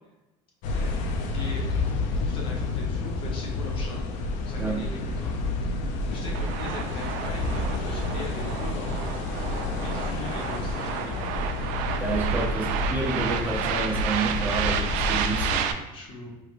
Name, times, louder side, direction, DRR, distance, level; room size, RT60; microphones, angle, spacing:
sound 1, 0.6-15.6, left 2 dB, 70° left, 0.5 m, -29 dB
voice 1, 0.7-4.1 4.4-5.8 6.1-9.3 9.7-11.3 12.2-12.4 15.5-16.3, left 2 dB, 40° left, -1 dB, 1.0 m, -41 dB
sound 2, 6.3-15.7, right 9 dB, 75° right, 0.4 m, -31 dB
voice 2, 12.0-15.8, right 3 dB, 15° right, -3 dB, 0.7 m, -29 dB
4.6 x 3.2 x 2.5 m, 1.0 s
cardioid pair, 135°, 13 cm